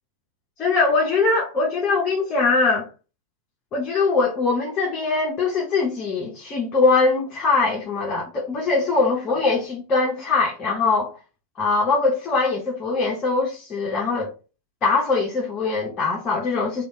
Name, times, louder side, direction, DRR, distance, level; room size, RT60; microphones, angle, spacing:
voice 1, 0.6-2.9 3.7-11.1 11.6-14.3 14.8-16.8, left 3 dB, 30° left, 1.0 m, -22 dB
3.3 x 2.5 x 4.0 m
figure-of-eight pair, 90°, 0 cm